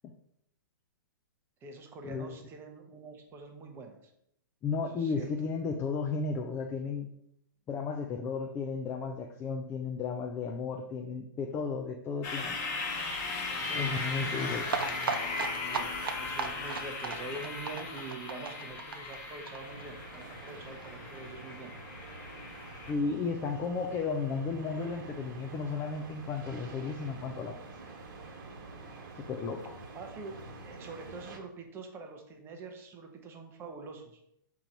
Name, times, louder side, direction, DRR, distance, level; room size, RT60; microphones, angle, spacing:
voice 1, 1.6-4.0 4.9-5.3 13.6-14.0 15.6-21.7 29.9-34.2, right 3 dB, 20° right, 4 dB, 0.7 m, -45 dB
voice 2, 4.6-7.1 7.7-12.6 13.8-14.7 22.9-27.6 29.3-29.7, left 4 dB, 20° left, 3 dB, 0.4 m, -34 dB
sound 1, 12.2-22.9, left 3 dB, 40° left, 1.0 m, -37 dB
sound 2, 14.7-20.2 20.5-20.6 20.8-20.9 21.2-21.3, right 5 dB, 85° right, 0.6 m, -36 dB
sound 3, 19.6-31.4, right 3 dB, 55° right, 1.3 m, -47 dB
3.7 x 2.9 x 4.5 m, 0.74 s
hypercardioid pair, 130°, 11 cm